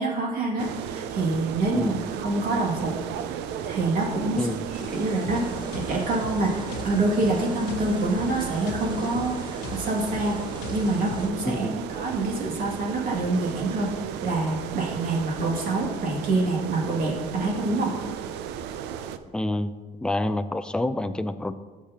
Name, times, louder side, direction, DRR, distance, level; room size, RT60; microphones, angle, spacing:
voice 1, 0.0-2.9 3.6-4.5 4.7-10.4 10.7-11.7 11.9-17.9, right 2 dB, 55° right, -2 dB, 2.4 m, -26 dB
sound 1, 0.6-19.2, right 9 dB, 90° right, 0.5 m, -35 dB
voice 2, 4.3-4.6 11.5-11.8 19.3-19.7 20.0-21.5, left 1 dB, 5° left, 10 dB, 0.4 m, -27 dB
sound 2, 4.7-11.3, right 1 dB, 25° right, 1.8 m, -41 dB
sound 3, 5.0-11.3, left 3 dB, 80° left, 0.9 m, -40 dB
13.0 x 6.6 x 2.9 m, 1.3 s
cardioid pair, 110°, 17 cm